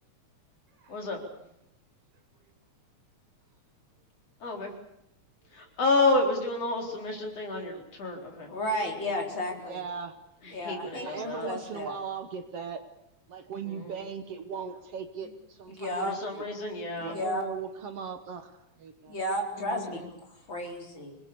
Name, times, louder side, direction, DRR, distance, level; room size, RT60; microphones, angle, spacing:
voice 1, 0.9-1.2 4.4-4.7 5.5-8.5 10.6-11.5 13.7-13.9 16.0-17.2 19.6-20.0, left 2 dB, 55° left, 2 dB, 5.3 m, -30 dB
voice 2, 8.4-9.8 10.5-12.0 15.7-16.2 17.0-17.4 19.1-21.2, left 1 dB, 40° left, 1 dB, 5.0 m, -33 dB
voice 3, 9.7-10.2 10.9-12.8 13.3-16.2 16.9-19.2, right 6 dB, 60° right, 8 dB, 2.1 m, -38 dB
26.5 x 20.5 x 6.9 m, 0.83 s
omnidirectional pair, 3.3 m